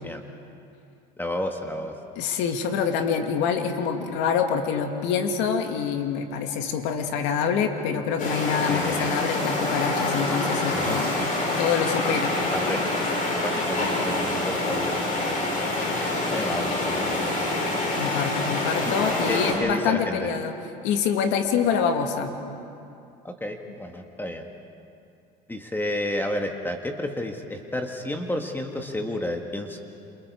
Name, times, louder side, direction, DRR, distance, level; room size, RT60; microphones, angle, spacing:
voice 1, 1.2-1.9 8.6-9.1 10.7-11.3 12.4-12.9 13.3-15.6 16.0-17.5 18.8-20.3 21.6-21.7 23.2-24.5 25.5-29.8, left 1 dB, 10° left, 3 dB, 1.8 m, -32 dB
voice 2, 2.2-11.1 11.6-12.3 18.0-20.5 20.8-22.3, left 7 dB, 80° left, 5 dB, 2.2 m, -26 dB
sound 1, 8.2-19.5, left 2 dB, 45° left, 6.5 m, -26 dB
28.5 x 28.0 x 4.8 m, 2.6 s
supercardioid pair, 105°, 19 cm